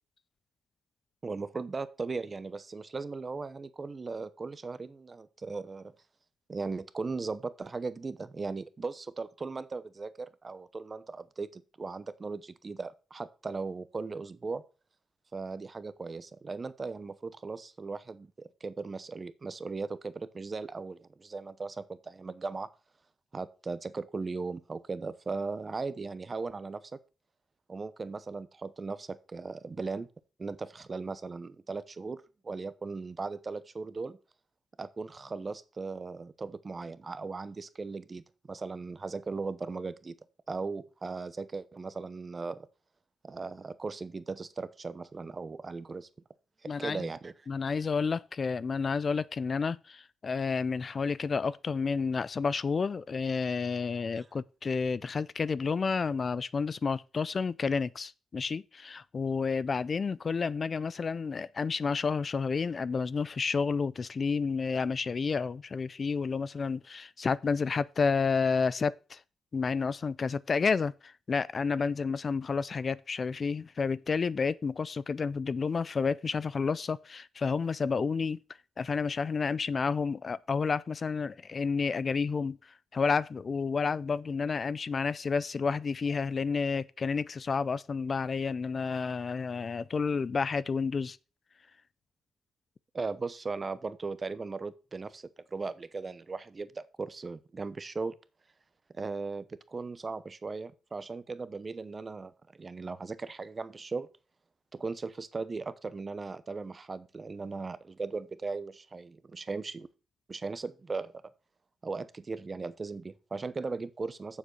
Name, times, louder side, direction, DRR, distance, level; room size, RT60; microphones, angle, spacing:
voice 1, 1.2-5.9 6.5-14.6 15.3-22.7 23.3-27.0 27.7-30.1 30.4-34.2 34.8-40.1 40.5-42.7 43.2-46.1 46.6-47.3 54.2-54.3 92.9-98.1 98.9-104.1 104.7-109.9 110.3-111.1 111.8-114.4, right 4 dB, 35° right, 0.8 m, -38 dB
voice 2, 46.7-47.1 47.5-69.2 69.5-78.4 78.8-91.2, left 5 dB, 40° left, 0.4 m, -30 dB
7.3 x 6.7 x 6.4 m
cardioid pair, 90°, 0 cm